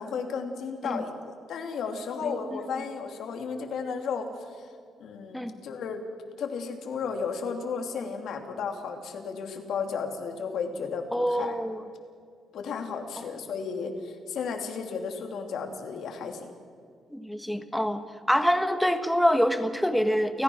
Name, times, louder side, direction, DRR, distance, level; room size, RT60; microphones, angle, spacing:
voice 1, 0.0-4.7 5.0-6.0 6.4-11.5 12.5-16.5, left 5 dB, 70° left, 4 dB, 2.9 m, -34 dB
voice 2, 2.2-2.6 5.3-5.5 11.1-11.8 17.1-18.0 18.3-20.4, equal, ahead, 8 dB, 1.4 m, -26 dB
29.5 x 14.5 x 6.4 m, 2.2 s
cardioid pair, 140°, 0 cm